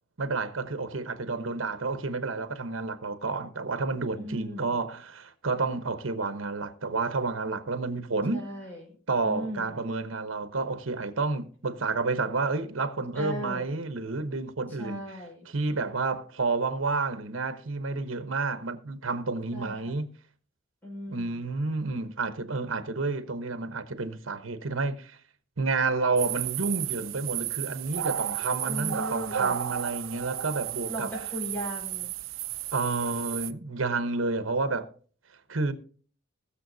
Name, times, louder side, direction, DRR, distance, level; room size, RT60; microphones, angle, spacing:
voice 1, 0.2-8.5 9.1-20.1 21.1-25.2 25.6-31.2 32.7-34.9 35.5-35.7, right 3 dB, 75° right, 1.0 m, -30 dB
voice 2, 4.2-4.8 8.3-8.8 9.2-9.7 13.1-13.7 14.8-15.4 19.5-19.9 20.8-21.4 28.7-29.6 30.8-32.1, equal, 10° left, 5.4 m, -37 dB
sound 1, 26.2-33.5, right 11 dB, 90° right, 0.5 m, -33 dB
20.5 x 6.9 x 2.7 m
head